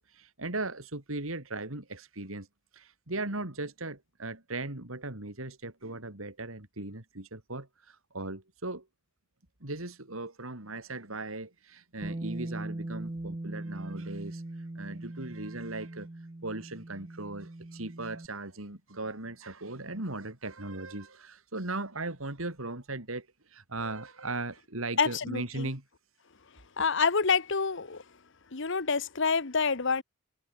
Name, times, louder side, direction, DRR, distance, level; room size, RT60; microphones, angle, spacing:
voice 1, 0.0-2.5 2.7-8.9 9.6-16.1 16.4-25.8, right 2 dB, 85° right, 3.7 m, -38 dB
Bass guitar, 12.0-18.3, right 1 dB, 25° right, 0.7 m, -40 dB
voice 2, 25.0-25.7 26.8-28.0 28.5-30.0, left 5 dB, 60° left, 1.3 m, -27 dB
head